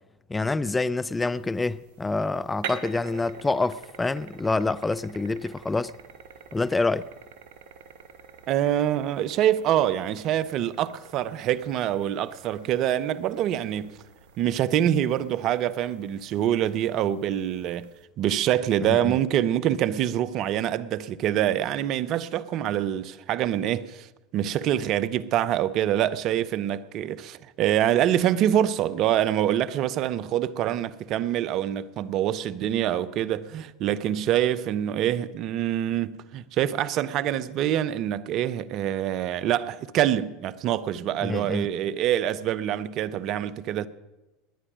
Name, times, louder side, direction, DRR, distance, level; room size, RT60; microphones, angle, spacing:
voice 1, 0.3-5.9 6.5-7.1 18.8-19.2 41.2-41.7, left 3 dB, 15° left, 0.5 m, -27 dB
sound 1, 1.1-18.0, right 6 dB, 65° right, 1.8 m, -46 dB
voice 2, 8.5-13.9 14.4-17.9 18.2-24.1 24.3-43.9, right 11 dB, 50° right, 0.7 m, -25 dB
19.5 x 9.9 x 6.2 m
hypercardioid pair, 90°, 0 cm